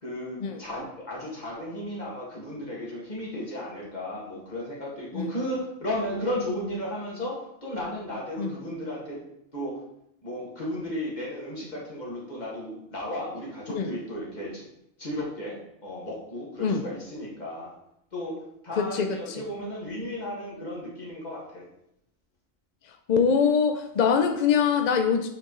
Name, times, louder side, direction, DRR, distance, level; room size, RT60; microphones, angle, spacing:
voice 1, 0.0-9.2 9.5-9.8 10.2-14.7 15.0-17.7 18.1-21.7, equal, 35° left, -4 dB, 2.1 m, -34 dB
voice 2, 18.8-19.4 23.1-25.3, left 6 dB, 60° left, 6 dB, 0.4 m, -23 dB
8.7 x 4.5 x 3.1 m, 0.77 s
omnidirectional pair, 1.3 m